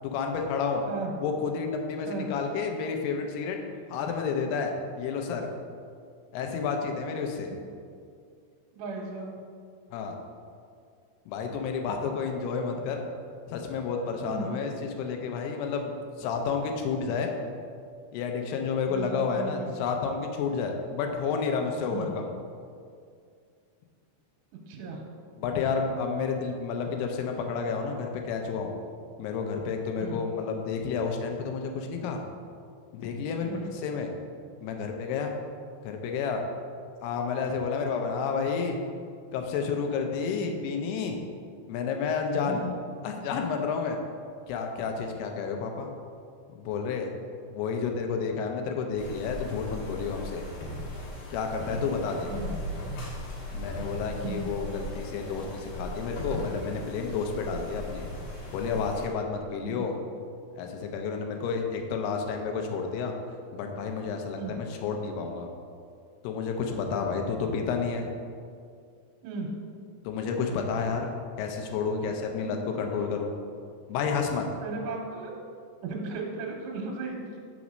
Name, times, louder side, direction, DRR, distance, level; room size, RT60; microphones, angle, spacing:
voice 1, 0.0-0.8 1.2-3.6 3.9-5.5 6.3-7.5 9.9-10.2 11.3-13.0 13.5-15.9 16.2-17.4 18.1-22.3 25.4-28.7 29.2-32.2 32.9-34.1 34.6-35.3 35.8-36.4 37.0-38.8 39.3-41.2 41.7-42.6 43.0-44.0 44.5-45.9 46.5-47.1 47.5-50.4 51.3-52.3 53.5-58.0 58.5-59.9 60.6-63.1 63.5-65.5 66.2-68.1 70.0-73.3 73.9-74.5, left 5 dB, 80° left, 3 dB, 2.5 m, -30 dB
voice 2, 8.7-9.3 14.2-14.5 18.9-19.7 21.9-22.1 24.7-25.0 30.0-30.2 33.5-33.7 42.4-42.7 52.3-52.5 54.2-54.4 59.6-59.7 64.4-64.5 69.2-69.5 72.4-72.5 74.6-75.3 75.8-77.2, right 4 dB, 90° right, -1 dB, 2.8 m, -36 dB
sound 1, 49.0-59.1, left 1 dB, 65° left, 2.4 m, -38 dB
5.9 x 4.1 x 6.2 m, 2.3 s
omnidirectional pair, 4.9 m